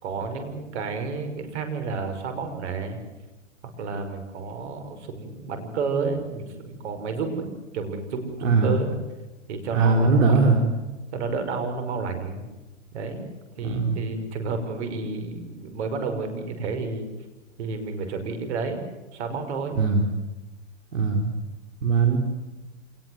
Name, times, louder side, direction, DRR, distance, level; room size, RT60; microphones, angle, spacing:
voice 1, 0.0-3.0 3.8-9.0 9.5-10.4 11.1-12.5 12.9-13.3 13.6-17.1 17.6-18.8 19.1-19.8, right 4 dB, 60° right, 7 dB, 5.6 m, -31 dB
voice 2, 9.7-10.6 13.6-14.0 19.8-20.0 20.9-21.3 21.8-22.2, right 4 dB, 80° right, 5 dB, 4.8 m, -20 dB
27.5 x 20.0 x 7.9 m, 1.1 s
hypercardioid pair, 145°, 38 cm